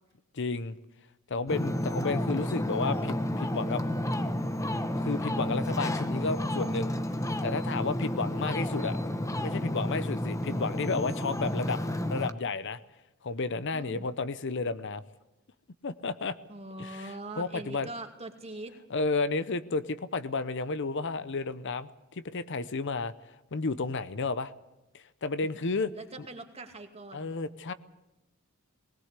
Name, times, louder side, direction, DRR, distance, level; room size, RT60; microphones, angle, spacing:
voice 1, 0.3-0.8 1.3-3.8 5.0-7.0 7.4-9.0 9.4-11.8 12.1-12.8 13.2-15.0 15.8-16.4 16.8-17.9 18.9-23.1 23.5-24.5 24.9-25.9 27.1-27.7, left 3 dB, 55° left, 14 dB, 0.7 m, -32 dB
Ocean, 1.5-12.3, left 1 dB, 15° left, 1.0 m, -31 dB
voice 2, 8.2-8.6 13.7-14.1 16.5-18.7 25.9-27.3, right 2 dB, 30° right, 5 dB, 2.3 m, -42 dB
20.0 x 18.0 x 8.2 m, 0.98 s
head